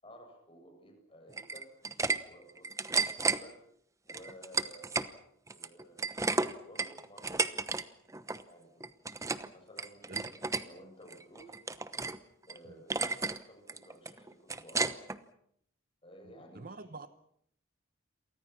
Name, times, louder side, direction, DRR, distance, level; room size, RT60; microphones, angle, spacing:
voice 1, 0.0-1.7 2.2-3.6 4.1-5.2 5.5-6.2 6.6-7.6 8.4-9.0 9.5-11.6 12.5-13.2 13.5-15.1 16.0-17.0, equal, 25° left, 4 dB, 7.6 m, -55 dB
sound 1, 1.3-2.2 2.5-3.4 4.1-5.1 5.5-7.8 8.1-8.4 8.8-9.5 9.8-10.6 11.1-12.2 12.5-12.6 12.9-13.4 13.7-15.2, right 3 dB, 15° right, 1.0 m, -32 dB
voice 2, 16.5-17.1, right 3 dB, 45° right, 13 dB, 0.9 m, -45 dB
29.5 x 23.5 x 6.0 m, 0.70 s
head